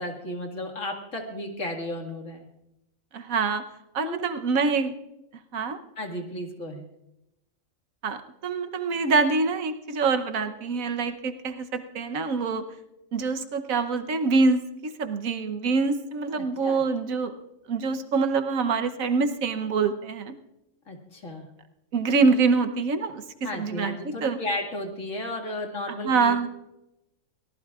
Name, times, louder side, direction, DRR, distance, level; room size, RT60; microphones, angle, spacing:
voice 1, 0.0-2.4 4.0-4.3 6.0-6.9 16.3-16.8 20.9-21.5 23.4-26.5, left 1 dB, 70° left, 1 dB, 2.5 m, -34 dB
voice 2, 3.1-3.6 3.9-4.9 5.5-5.8 8.0-8.2 8.4-12.6 13.1-14.6 15.0-17.3 17.7-20.3 21.9-23.2 23.5-24.4 26.0-26.5, right 4 dB, 80° right, 8 dB, 1.4 m, -25 dB
23.5 x 17.5 x 2.4 m, 0.90 s
omnidirectional pair, 1.4 m